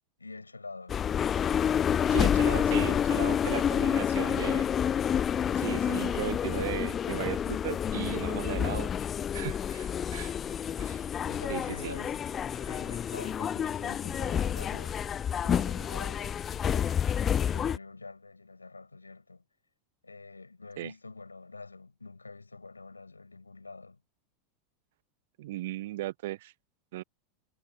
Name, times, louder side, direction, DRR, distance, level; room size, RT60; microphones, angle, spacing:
voice 1, 0.2-1.0 11.0-15.0 15.4-19.4 20.0-24.0, left 3 dB, 90° left, 6.9 m, -47 dB
sound 1, 0.9-17.8, left 8 dB, 30° left, 0.3 m, -29 dB
voice 2, 2.1-4.7 5.1-5.2 5.6-8.9 9.3-10.3 10.8-11.0 11.5-11.9 20.8-20.9 25.4-26.5 26.9-27.0, right 16 dB, 60° right, 0.9 m, -36 dB
figure-of-eight pair, 85°, 0 cm